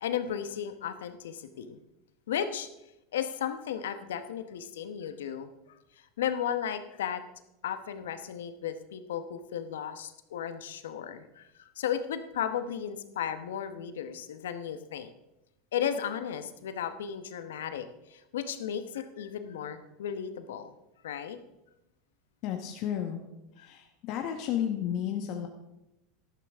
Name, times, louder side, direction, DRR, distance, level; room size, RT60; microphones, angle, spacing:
voice 1, 0.0-1.8 2.3-2.7 3.1-5.7 6.2-7.2 7.6-15.1 15.7-20.7 21.0-21.4 23.6-23.7, left 9 dB, 85° left, 10 dB, 1.0 m, -35 dB
voice 2, 22.4-23.2 23.6-25.5, left 10 dB, 55° left, 4 dB, 1.2 m, -32 dB
12.5 x 12.0 x 3.6 m, 0.92 s
hypercardioid pair, 100°, 0 cm